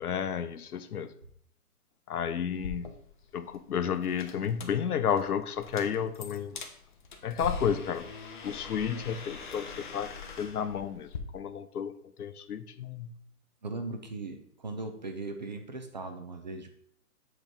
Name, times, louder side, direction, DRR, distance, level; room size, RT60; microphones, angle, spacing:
voice 1, 0.0-1.1 2.1-2.9 3.3-6.6 7.2-8.1 8.4-13.2, left 8 dB, 70° left, 12 dB, 0.8 m, -32 dB
sound 1, 2.5-11.2, left 4 dB, 35° left, 0.7 m, -43 dB
voice 2, 13.6-16.7, right 3 dB, 30° right, 5 dB, 0.5 m, -38 dB
7.7 x 3.1 x 5.2 m, 0.66 s
hypercardioid pair, 150°, 46 cm